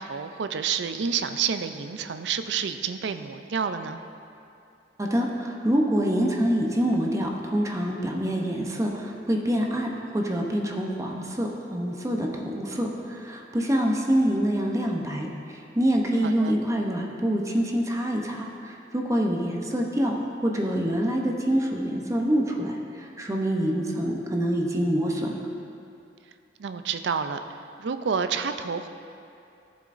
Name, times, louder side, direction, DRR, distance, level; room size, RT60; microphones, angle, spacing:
voice 1, 0.0-4.0 16.2-16.6 26.6-27.4 27.8-28.9, right 6 dB, 85° right, 9 dB, 0.4 m, -29 dB
voice 2, 5.0-25.4, equal, 20° right, 0 dB, 0.7 m, -26 dB
13.5 x 7.6 x 2.6 m, 2.7 s
head